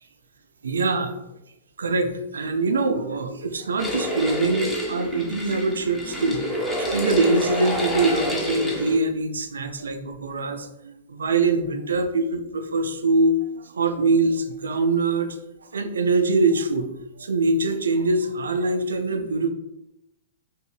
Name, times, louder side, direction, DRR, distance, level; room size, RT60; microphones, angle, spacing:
voice 1, 0.6-1.2 1.8-16.9 17.2-19.5, right 3 dB, 80° right, 6 dB, 0.4 m, -23 dB
sound 1, 3.8-9.0, equal, 10° left, 0.8 m, -28 dB
3.6 x 2.6 x 3.1 m, 0.87 s
hypercardioid pair, 115°, 0 cm